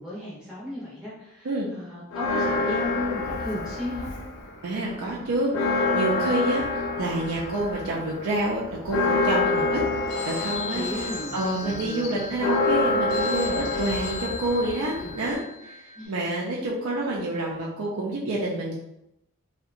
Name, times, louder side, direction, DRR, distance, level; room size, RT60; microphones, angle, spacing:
voice 1, 0.0-4.1 10.7-12.2 15.0-15.1 16.0-16.2, left 1 dB, 5° right, -9 dB, 0.6 m, -35 dB
Church bell, 2.1-4.5 4.9-5.0 5.3-15.3, left 3 dB, 60° left, 0.4 m, -27 dB
voice 2, 4.6-10.9 11.3-18.7, right 1 dB, 80° right, -4 dB, 0.5 m, -28 dB
Telephone, 10.1-16.1, left 4 dB, 75° left, 0.7 m, -37 dB
2.7 x 2.1 x 2.4 m, 0.83 s
head